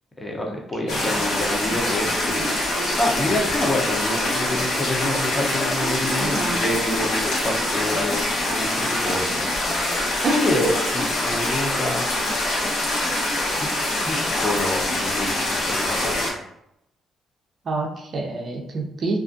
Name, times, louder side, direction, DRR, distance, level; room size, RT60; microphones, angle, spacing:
voice 1, 0.2-9.7 10.3-12.1 13.6-13.7 14.0-16.3, left 1 dB, 20° left, 0 dB, 0.7 m, -27 dB
voice 2, 0.8-1.2 6.2-6.7 10.2-10.4 17.7-19.2, right 3 dB, 50° right, 0 dB, 0.5 m, -27 dB
sound 1, 0.9-16.3, left 1 dB, 80° left, 1.0 m, -24 dB
2.4 x 2.4 x 2.5 m, 0.79 s
cardioid pair, 90°, 0 cm